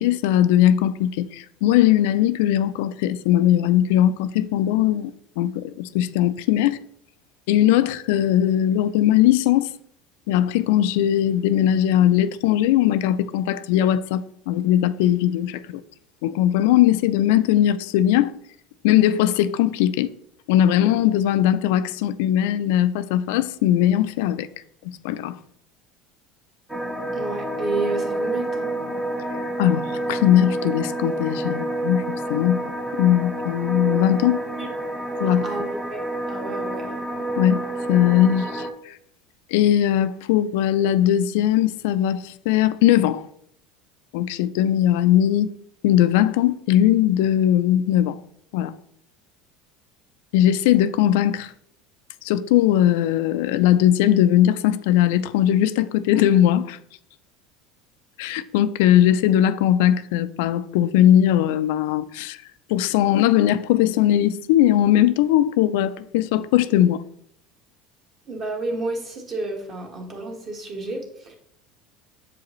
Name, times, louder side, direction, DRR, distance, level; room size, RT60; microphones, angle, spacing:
voice 1, 0.0-5.1 5.4-6.8 7.5-9.7 10.3-15.6 16.2-18.3 18.8-20.1 20.5-24.5 25.0-25.4 29.6-32.0 32.3-34.4 35.2-35.4 37.4-37.6 37.9-39.0 39.5-43.3 44.1-45.5 45.8-48.2 48.5-48.7 50.3-51.5 52.2-56.8 58.2-62.4 62.7-67.0, left 12 dB, 80° left, 0.3 m, -19 dB
sound 1, 26.7-38.7, right 2 dB, 5° right, 0.6 m, -28 dB
voice 2, 27.1-28.7 34.6-34.7 35.3-36.9 68.3-71.4, right 2 dB, 30° right, 1.4 m, -31 dB
7.4 x 4.8 x 3.0 m
cardioid pair, 150°, 0 cm